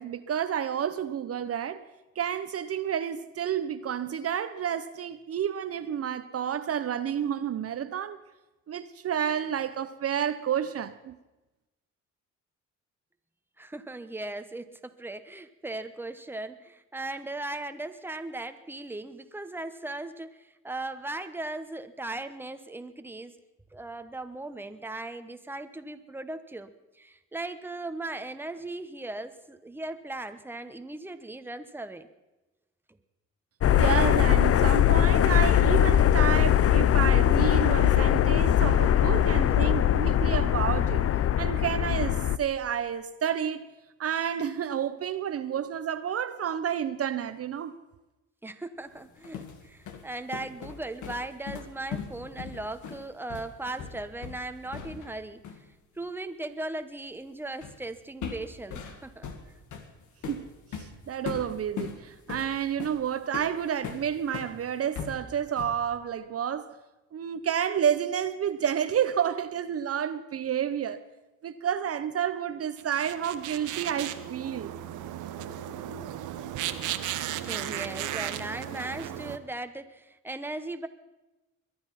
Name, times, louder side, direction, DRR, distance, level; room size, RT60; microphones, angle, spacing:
voice 1, 0.0-1.8 2.2-8.2 8.7-11.2 33.7-41.0 41.4-43.6 44.0-47.8 60.3-60.5 60.7-66.7 67.1-71.0 71.4-74.7, right 9 dB, 50° right, 0.8 m, -30 dB
voice 2, 13.6-23.4 23.7-32.1 39.3-39.8 48.4-55.4 56.0-59.3 77.3-80.9, right 2 dB, 5° right, 1.1 m, -38 dB
sound 1, 33.6-42.4, left 11 dB, 50° left, 0.6 m, -21 dB
sound 2, 49.0-55.2 55.4-55.7 57.6-57.9 58.2-64.5 64.9-65.9, left 6 dB, 80° left, 2.0 m, -39 dB
sound 3, 72.8-79.4, right 11 dB, 85° right, 1.0 m, -35 dB
22.0 x 10.5 x 5.8 m
cardioid pair, 90°, 30 cm